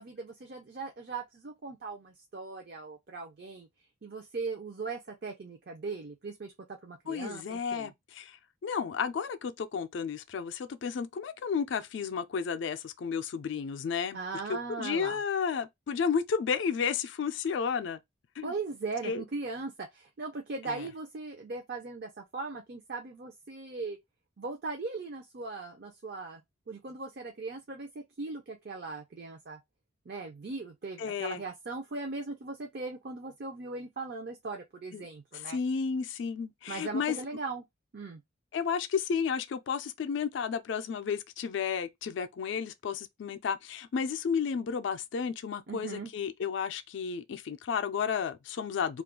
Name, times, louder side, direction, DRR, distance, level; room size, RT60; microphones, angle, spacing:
voice 1, 0.0-3.7 4.0-7.9 14.1-15.2 18.4-24.0 24.4-26.4 26.7-29.6 30.1-35.6 36.7-37.6 37.9-38.2 45.7-46.1, right 3 dB, 50° right, 0.5 m, -39 dB
voice 2, 7.1-14.2 14.5-18.0 18.4-18.5 19.0-19.2 20.7-20.9 31.0-31.4 34.9-35.1 35.3-37.2 38.5-49.0, left 6 dB, 65° left, 0.3 m, -32 dB
2.3 x 2.3 x 3.6 m
head